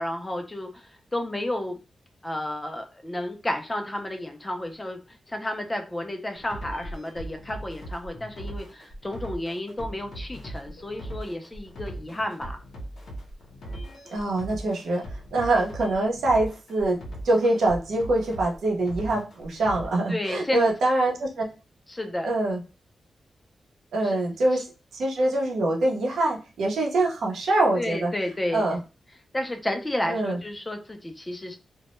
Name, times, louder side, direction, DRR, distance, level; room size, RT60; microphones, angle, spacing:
voice 1, 0.0-1.8 2.2-5.0 5.3-12.6 20.1-20.7 21.9-22.3 24.0-24.2 27.7-28.6 29.3-31.6, left 1 dB, 15° left, 5 dB, 0.3 m, -31 dB
sound 1, 6.4-19.9, right 1 dB, 65° left, 0.6 m, -39 dB
voice 2, 14.1-15.0 15.3-17.0 17.2-21.5 22.2-22.6 23.9-24.7 24.9-28.1 28.5-28.8 30.1-30.4, right 2 dB, 85° right, -1 dB, 0.6 m, -24 dB
2.1 x 2.0 x 2.9 m, 0.31 s
wide cardioid pair, 145°, 0 cm